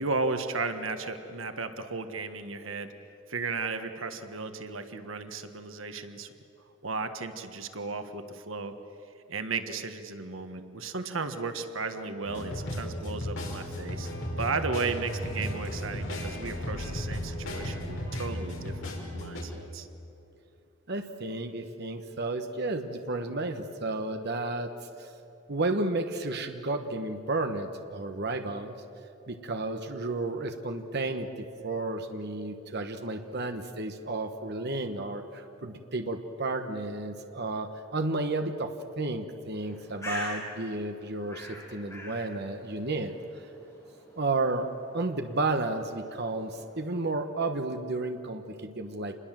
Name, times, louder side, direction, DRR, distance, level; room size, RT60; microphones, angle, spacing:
voice 1, 0.0-2.9 3.3-6.3 6.8-8.7 9.3-14.1 14.4-19.9, right 4 dB, 90° right, 8 dB, 1.5 m, -34 dB
sound 1, 12.2-19.4, equal, 75° left, 5.1 m, -35 dB
voice 2, 20.9-24.7 25.0-25.1 25.5-28.7 29.3-43.1 44.2-49.2, right 2 dB, 55° right, 6 dB, 1.3 m, -32 dB
Bird, 39.5-47.1, left 1 dB, 15° left, 8.0 m, -44 dB
27.5 x 21.5 x 7.6 m, 2.9 s
head